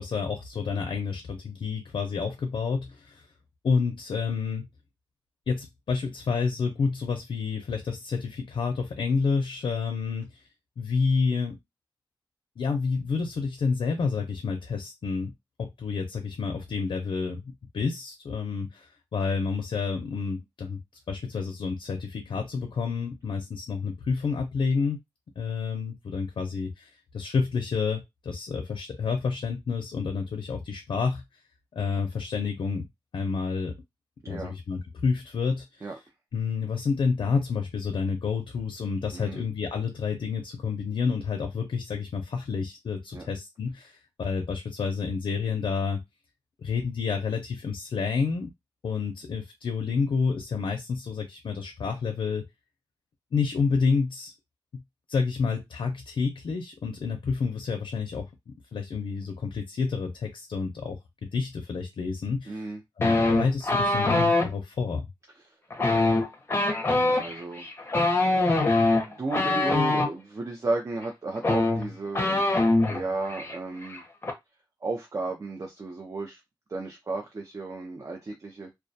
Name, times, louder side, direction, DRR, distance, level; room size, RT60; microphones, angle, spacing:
voice 1, 0.0-3.3 3.6-4.6 5.5-10.4 10.8-11.6 12.6-15.3 15.6-20.8 21.1-25.0 25.4-31.2 31.7-32.9 33.1-33.7 34.3-35.9 36.3-46.0 46.6-48.5 48.8-52.5 53.3-54.3 54.7-54.8 55.1-61.0 61.3-62.7 63.0-65.1, left 5 dB, 80° left, 4 dB, 0.4 m, -29 dB
voice 2, 34.2-34.5 35.8-36.0 39.1-39.5 43.1-43.3 62.5-62.8 67.0-67.7 68.3-68.5 69.0-72.4 72.9-74.0 74.8-76.4 76.7-78.7, right 3 dB, 40° right, 1 dB, 0.5 m, -33 dB
sound 1, 63.0-64.5 65.7-70.1 71.0-71.1 71.4-73.0 73.3-73.6 73.8-74.3, left 2 dB, 30° left, 0.5 m, -23 dB
2.2 x 2.1 x 2.6 m, 0.18 s
wide cardioid pair, 140°, 9 cm